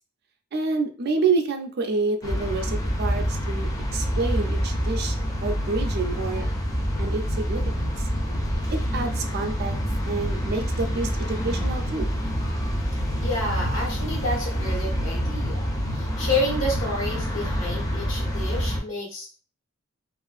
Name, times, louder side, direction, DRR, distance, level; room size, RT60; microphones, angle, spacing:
voice 1, 0.5-6.5 7.0-7.6 8.0-8.1 8.7-9.7 10.1-12.1, right 4 dB, 55° right, 5 dB, 0.4 m, -28 dB
sound 1, 2.2-18.8, equal, 20° left, 0.5 m, -27 dB
voice 2, 13.2-19.4, left 1 dB, 75° left, -3 dB, 1.1 m, -30 dB
2.4 x 2.4 x 2.4 m, 0.38 s
head